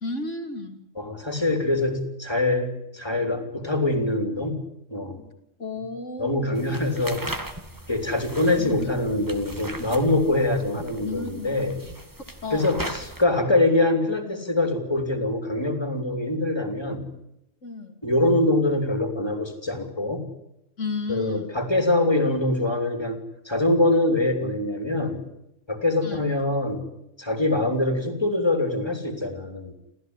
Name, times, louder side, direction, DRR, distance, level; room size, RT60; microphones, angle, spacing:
voice 1, 0.0-0.9 5.6-6.7 8.6-9.2 11.0-11.5 12.4-12.7 17.6-18.0 20.8-21.5 26.0-26.3, left 3 dB, 75° left, 6 dB, 3.3 m, -33 dB
voice 2, 1.0-4.6 4.9-5.3 6.2-7.3 7.9-11.8 12.5-17.1 18.0-20.3 21.1-25.2 25.7-26.8 27.2-29.7, left 2 dB, 20° left, 6 dB, 3.5 m, -24 dB
sound 1, 6.5-13.2, right 1 dB, 15° right, 2.0 m, -38 dB
29.5 x 14.5 x 9.9 m, 0.86 s
omnidirectional pair, 1.3 m